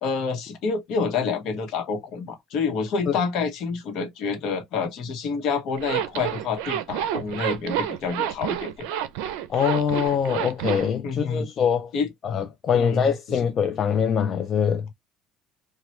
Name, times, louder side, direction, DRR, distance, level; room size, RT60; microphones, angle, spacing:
voice 1, 0.0-8.9 11.0-11.5 11.9-12.1 12.7-13.4, left 5 dB, 65° left, 1.0 m, -28 dB
Zipper (clothing), 5.8-10.9, right 11 dB, 90° right, 0.4 m, -29 dB
voice 2, 9.5-11.9 12.2-14.9, left 7 dB, 40° left, 0.3 m, -23 dB
3.0 x 2.2 x 3.0 m
cardioid pair, 115°, 0 cm